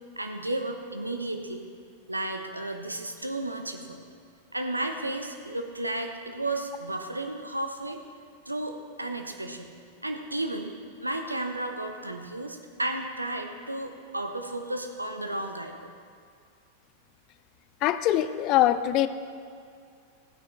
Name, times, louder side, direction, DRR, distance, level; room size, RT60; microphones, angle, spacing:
voice 1, 0.2-1.7 2.1-4.0 4.5-8.0 8.5-9.7 10.0-15.9, right 1 dB, 85° right, 5 dB, 0.8 m, -33 dB
voice 2, 17.8-19.1, left 13 dB, 40° left, 13 dB, 0.4 m, -23 dB
14.5 x 9.3 x 3.4 m, 2.3 s
figure-of-eight pair, 90°, 0 cm